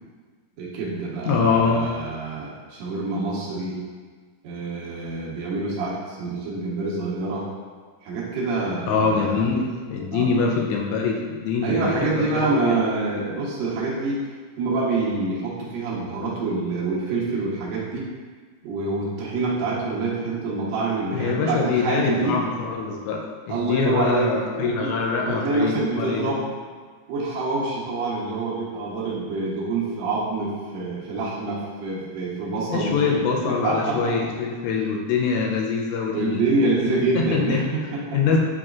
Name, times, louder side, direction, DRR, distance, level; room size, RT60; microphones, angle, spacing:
voice 1, 0.6-3.8 4.4-7.4 8.0-9.6 10.1-10.3 11.6-14.3 14.6-18.1 18.6-22.4 23.5-24.9 25.2-26.4 27.1-34.1 34.7-34.8 36.1-38.2, right 3 dB, 85° right, -6 dB, 1.5 m, -26 dB
voice 2, 1.3-1.9 8.9-12.0 12.3-12.8 21.1-26.4 32.7-37.6 38.1-38.4, left 5 dB, 80° left, -1 dB, 2.4 m, -24 dB
7.1 x 3.0 x 2.4 m, 1.5 s
omnidirectional pair, 4.5 m